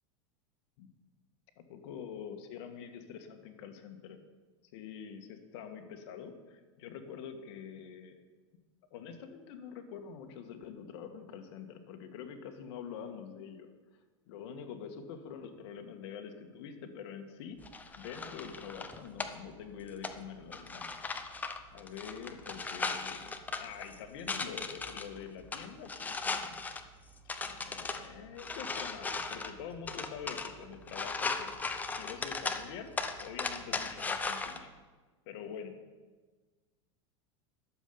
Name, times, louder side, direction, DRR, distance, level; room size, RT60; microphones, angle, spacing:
voice 1, 1.6-4.2 4.7-8.2 8.9-13.7 14.3-17.6 18.0-26.6 27.4-31.7 31.9-34.7 35.3-35.8, left 7 dB, 60° left, 6 dB, 1.8 m, -46 dB
sound 1, 17.6-34.6, left 4 dB, 10° left, 0.7 m, -39 dB
12.0 x 7.3 x 8.8 m, 1.3 s
supercardioid pair, 145°, 15 cm